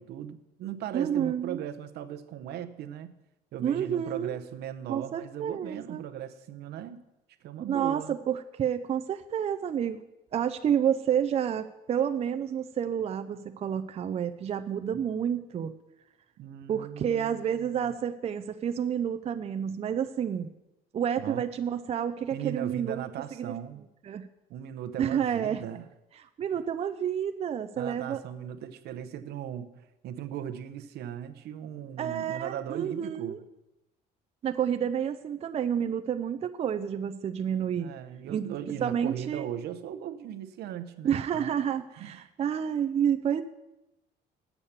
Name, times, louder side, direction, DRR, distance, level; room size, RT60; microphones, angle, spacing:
voice 1, 0.0-3.1 3.5-7.0 7.4-8.2 16.4-17.9 21.2-21.5 22.3-23.8 24.5-25.8 27.8-33.4 37.8-41.5 42.0-42.3, right 10 dB, 75° right, 10 dB, 0.8 m, -38 dB
voice 2, 0.9-1.6 3.6-4.3 4.9-6.1 7.7-10.0 10.3-15.7 16.7-20.5 20.9-23.0 23.4-23.5 24.1-24.3 25.0-25.6 26.4-28.2 32.0-33.4 34.4-37.9 38.3-39.5 41.0-43.4, right 8 dB, 40° right, 8 dB, 0.5 m, -29 dB
8.1 x 7.2 x 6.8 m, 0.94 s
cardioid pair, 110°, 17 cm